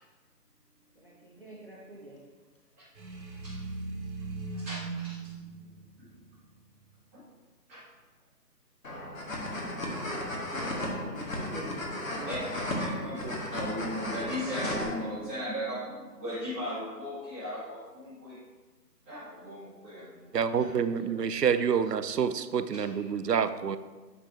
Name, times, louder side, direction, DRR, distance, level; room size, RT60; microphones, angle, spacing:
voice 1, 0.9-2.2 10.7-12.5, right 1 dB, 35° right, -3 dB, 0.7 m, -45 dB
sound 1, 2.9-6.9, right 4 dB, 90° right, 1.4 m, -39 dB
voice 2, 4.5-5.2 6.0-6.1 7.1-7.2 7.7-7.8 10.4-10.5 12.2-18.4 19.0-21.3 22.7-23.1, equal, 10° right, -15 dB, 2.0 m, -38 dB
sound 2, 8.8-14.8, left 1 dB, 50° left, 1.8 m, -34 dB
voice 3, 20.3-23.8, right 7 dB, 70° right, 13 dB, 0.6 m, -27 dB
9.1 x 6.7 x 2.8 m, 1.3 s
figure-of-eight pair, 170°, 50 cm